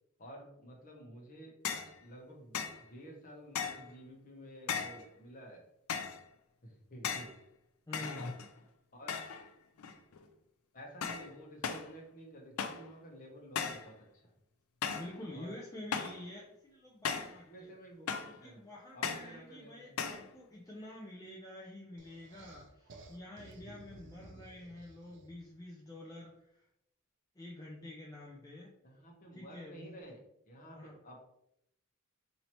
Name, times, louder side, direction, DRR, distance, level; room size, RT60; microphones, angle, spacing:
voice 1, 0.2-1.5 2.0-2.6 2.9-5.6 6.6-7.3 8.0-8.2 8.9-9.2 10.7-14.0 15.3-15.5 17.4-18.6 18.9-20.0 28.8-30.2 30.5-30.8 31.0-31.2, right 1 dB, 40° left, -1 dB, 0.9 m, -51 dB
sound 1, 1.6-1.9 2.5-2.8 3.5-3.9 4.7-5.0 5.9-6.2 7.0-7.4 7.9-8.6 9.1-9.5 9.8-10.2 11.0-11.3 11.6-11.9 12.6-12.9 13.5-13.9 14.8-15.1 15.9-16.2 17.0-17.4 18.1-18.4 19.0-19.3 20.0-20.3, left 6 dB, 75° left, 0.4 m, -37 dB
voice 2, 7.9-8.3 15.0-17.8 18.2-26.7 27.3-28.7 29.3-30.0 30.7-31.0, left 1 dB, 15° left, -4 dB, 0.4 m, -48 dB
sound 2, 22.0-25.5, right 2 dB, 55° right, 0.5 m, -55 dB
4.3 x 2.8 x 3.0 m, 0.78 s
head